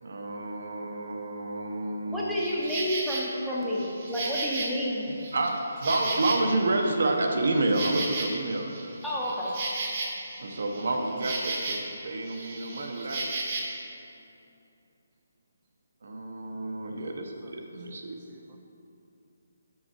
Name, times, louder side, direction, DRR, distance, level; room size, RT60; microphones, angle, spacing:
voice 1, 0.0-2.4 5.3-8.9 10.4-13.3 16.0-18.2, right 2 dB, 65° right, 2 dB, 0.8 m, -29 dB
voice 2, 2.1-5.1 9.0-9.5, equal, ahead, -7 dB, 0.7 m, -30 dB
Insect, 2.4-3.2 3.7-6.8 7.1-12.0 12.2-13.8, right 2 dB, 35° right, 0.9 m, -34 dB
voice 3, 16.9-17.6 18.3-18.6, right 6 dB, 20° right, 0 dB, 0.3 m, -57 dB
5.8 x 5.6 x 4.4 m, 2.8 s
hypercardioid pair, 165°, 0 cm